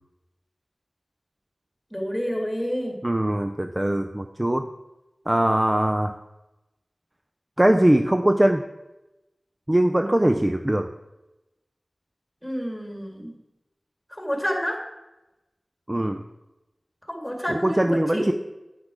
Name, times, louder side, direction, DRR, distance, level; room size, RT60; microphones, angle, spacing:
voice 1, 1.9-3.0 12.4-13.3 14.1-14.8 17.1-18.3, equal, 10° left, 2 dB, 2.0 m, -29 dB
voice 2, 3.0-4.7 5.3-6.2 7.6-8.6 9.7-10.9 15.9-16.2 17.5-18.3, right 1 dB, 20° right, 6 dB, 0.4 m, -21 dB
8.7 x 5.9 x 4.8 m, 0.98 s
wide cardioid pair, 60°, 0 cm